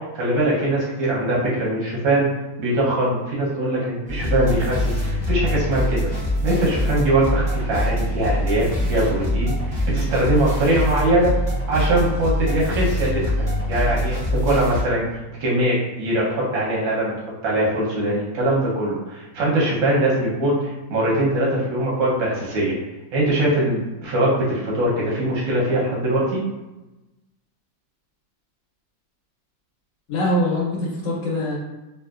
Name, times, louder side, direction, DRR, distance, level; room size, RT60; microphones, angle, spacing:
voice 1, 0.0-2.3 2.6-6.1 6.4-11.3 11.7-15.0 15.4-17.1 17.4-22.7 23.1-26.4, right 1 dB, 90° right, -5 dB, 1.5 m, -22 dB
sound 1, 4.1-14.8, equal, 45° right, 0.4 m, -24 dB
voice 2, 30.1-31.6, left 1 dB, 70° left, -4 dB, 1.6 m, -23 dB
3.7 x 2.6 x 2.3 m, 1.0 s
omnidirectional pair, 2.1 m